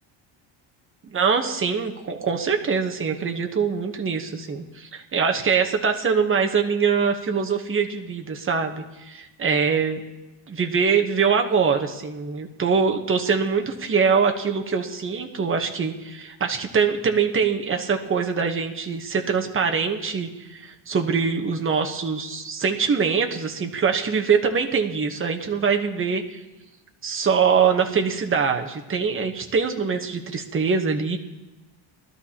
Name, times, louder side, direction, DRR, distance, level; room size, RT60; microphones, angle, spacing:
voice 1, 1.1-10.0 10.5-26.4 27.0-31.2, right 5 dB, 25° right, 3 dB, 1.1 m, -23 dB
21.5 x 12.5 x 2.9 m, 1.1 s
cardioid pair, 155°, 48 cm